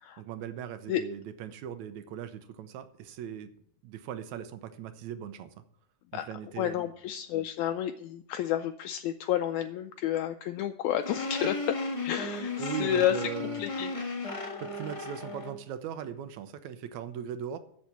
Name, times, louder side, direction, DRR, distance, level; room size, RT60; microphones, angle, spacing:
voice 1, 0.2-3.5 3.8-5.5 6.1-6.8 12.6-13.6 14.6-17.6, right 9 dB, 75° right, 10 dB, 2.0 m, -39 dB
voice 2, 6.6-11.6 12.0-13.2 13.6-13.9, left 12 dB, 80° left, 8 dB, 1.8 m, -30 dB
sound 1, 11.0-15.6, left 3 dB, 40° left, 0.4 m, -35 dB
7.6 x 7.3 x 8.2 m, 0.66 s
omnidirectional pair, 3.6 m